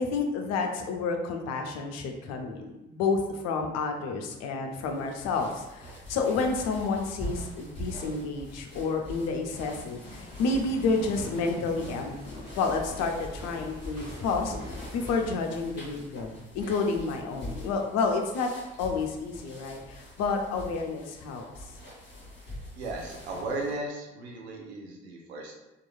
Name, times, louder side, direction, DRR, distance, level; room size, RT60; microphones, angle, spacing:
voice 1, 0.0-18.5 18.8-21.4, left 4 dB, 55° left, 3 dB, 0.5 m, -30 dB
sound 1, 4.8-23.8, equal, 35° left, 1.3 m, -44 dB
sound 2, 10.0-15.3, left 1 dB, 15° left, 1.5 m, -43 dB
voice 2, 22.8-25.6, right 2 dB, 80° right, 0 dB, 0.5 m, -36 dB
2.9 x 2.4 x 2.2 m, 0.98 s
figure-of-eight pair, 45°, 32 cm